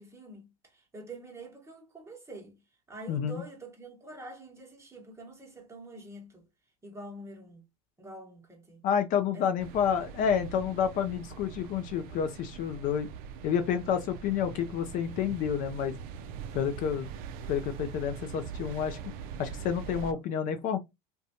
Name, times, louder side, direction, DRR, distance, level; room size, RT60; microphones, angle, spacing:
voice 1, 0.0-2.6 2.9-6.4 6.8-7.6 8.0-8.8 9.3-9.5 20.0-20.2, right 1 dB, 15° right, 1.0 m, -46 dB
voice 2, 3.1-3.4 8.8-13.1 13.4-15.9 16.5-17.1 17.5-19.0 19.4-20.8, left 8 dB, 45° left, 0.4 m, -29 dB
sound 1, 9.6-20.1, right 7 dB, 55° right, 0.4 m, -42 dB
2.5 x 2.2 x 2.7 m
hypercardioid pair, 85°, 18 cm